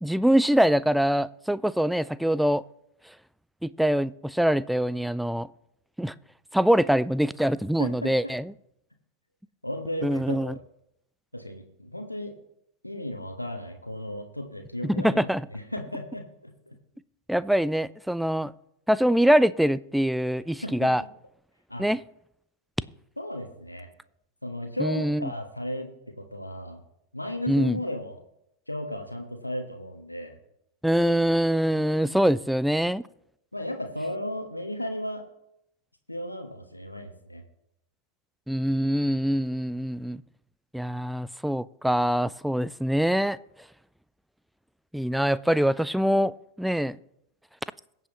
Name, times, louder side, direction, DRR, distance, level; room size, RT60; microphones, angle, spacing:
voice 1, 0.0-2.6 3.6-5.5 6.0-6.1 6.5-8.4 10.0-10.5 14.8-15.4 17.3-18.5 18.9-21.0 21.8-22.0 24.8-25.3 27.5-27.8 30.8-33.0 38.5-40.2 40.7-43.4 44.9-46.3 46.6-47.0, equal, ahead, 0.3 m, -24 dB
voice 2, 7.8-8.1 9.6-10.6 11.3-12.3 12.8-16.8 20.6-20.9 21.7-21.9 23.2-23.9 24.4-25.9 26.2-26.8 27.1-28.2 28.7-30.4 33.5-35.2 36.1-37.4, left 1 dB, 85° left, 1.3 m, -35 dB
22.0 x 7.6 x 3.0 m
figure-of-eight pair, 90°, 0 cm